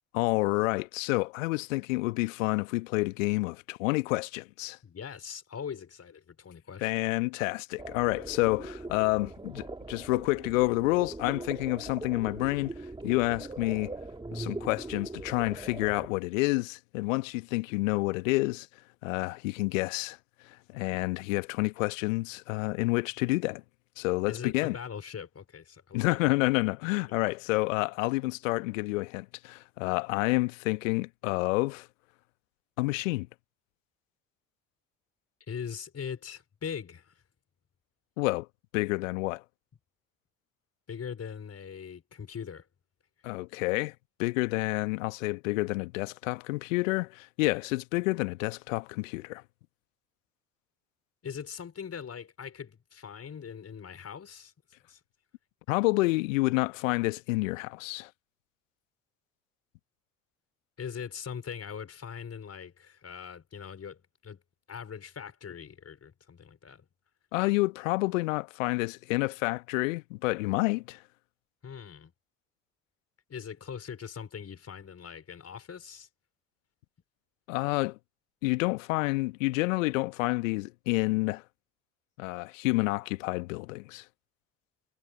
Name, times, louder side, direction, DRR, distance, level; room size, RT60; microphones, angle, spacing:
voice 1, 0.1-4.8 6.8-12.7 13.0-13.9 14.3-18.7 19.0-20.2 20.7-23.6 24.0-24.7 25.9-31.9 32.8-33.3 38.2-38.5 38.7-39.4 43.2-43.9 44.2-49.4 55.7-58.1 67.3-71.0 77.5-78.0 78.4-81.4 82.2-84.0, left 23 dB, 70° left, 1.4 m, -29 dB
voice 2, 4.8-6.9 24.3-26.2 35.5-37.1 40.9-42.6 51.2-54.5 54.9-55.0 60.8-64.4 64.7-66.9 71.6-72.1 73.3-76.1, left 7 dB, 35° left, 5.0 m, -41 dB
sound 1, 7.8-16.1, right 2 dB, 10° right, 1.9 m, -41 dB
figure-of-eight pair, 50°, 40 cm